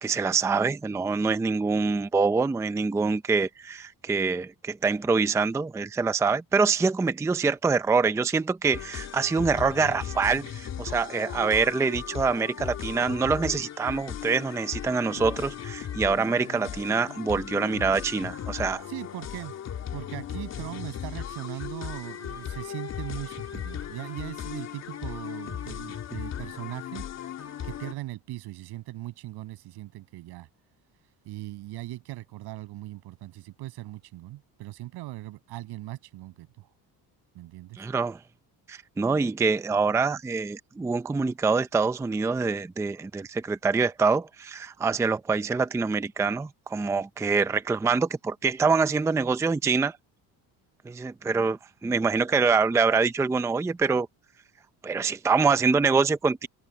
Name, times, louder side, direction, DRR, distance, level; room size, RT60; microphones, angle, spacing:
voice 1, 0.0-18.9 37.8-38.2 38.7-50.0 50.8-54.1 54.8-56.5, right 4 dB, 5° right, 0.5 m, -25 dB
sound 1, 8.7-27.9, left 9 dB, 40° left, 2.9 m, -37 dB
voice 2, 18.9-19.5 19.9-27.0 27.6-30.5 31.2-36.7 37.3-37.9, right 17 dB, 80° right, 6.9 m, -39 dB
cardioid pair, 165°, 39 cm